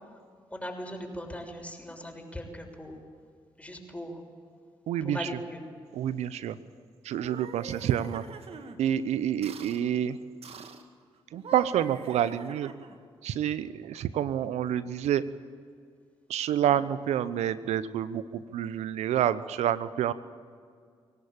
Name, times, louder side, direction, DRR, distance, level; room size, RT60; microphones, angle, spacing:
voice 1, 0.5-3.0 3.6-4.2 5.0-5.6 16.7-16.8, equal, 10° left, 3 dB, 6.4 m, -39 dB
voice 2, 4.9-5.3 5.9-6.6 7.0-8.3 8.8-10.2 11.3-12.7 13.2-15.2 16.3-20.1, right 10 dB, 75° right, 15 dB, 0.9 m, -28 dB
sound 1, 7.1-8.8 9.4-9.8 10.4-10.9 11.3-13.0, right 5 dB, 60° right, 2.0 m, -44 dB
23.0 x 18.0 x 8.9 m, 2.2 s
hypercardioid pair, 40°, 11 cm